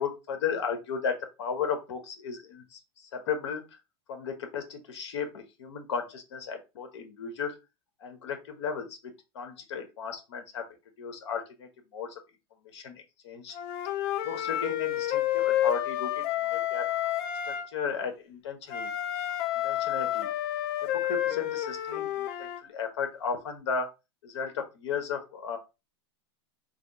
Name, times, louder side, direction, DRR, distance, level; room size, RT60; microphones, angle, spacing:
voice 1, 0.0-3.8 4.1-7.6 8.0-10.7 11.0-12.2 12.6-13.6 14.2-16.2 16.5-16.9 17.4-18.9 19.6-20.3 20.8-23.9 24.2-25.6, left 6 dB, 80° left, 5 dB, 1.2 m, -35 dB
Wind instrument woodwind instrument, 13.5-17.7 18.7-22.6, left 12 dB, 45° left, 0.5 m, -30 dB
3.3 x 2.4 x 3.8 m, 0.26 s
supercardioid pair, 140°, 15 cm